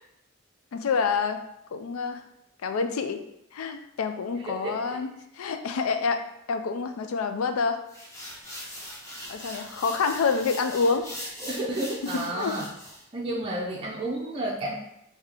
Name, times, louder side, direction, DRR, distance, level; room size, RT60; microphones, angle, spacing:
voice 1, 0.7-1.4 1.7-2.2 2.6-3.2 3.5-5.1 5.4-7.8 9.3-11.1 12.1-12.6, left 5 dB, 80° left, 8 dB, 0.4 m, -27 dB
voice 2, 4.4-5.0 11.4-12.6 13.1-14.7, right 1 dB, 25° right, -4 dB, 0.4 m, -31 dB
sound 1, 7.9-13.0, equal, 15° left, 0.7 m, -41 dB
3.6 x 2.7 x 3.4 m, 0.81 s
head